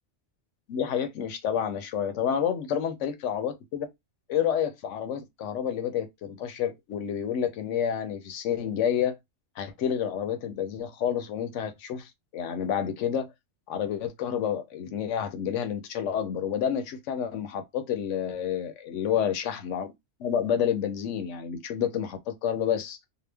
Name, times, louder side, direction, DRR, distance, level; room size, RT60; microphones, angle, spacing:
voice 1, 0.7-3.9 4.3-9.2 9.6-13.3 13.7-19.9 20.2-23.1, left 8 dB, 80° left, 1.0 m, -29 dB
2.8 x 2.1 x 3.3 m
omnidirectional pair, 1.3 m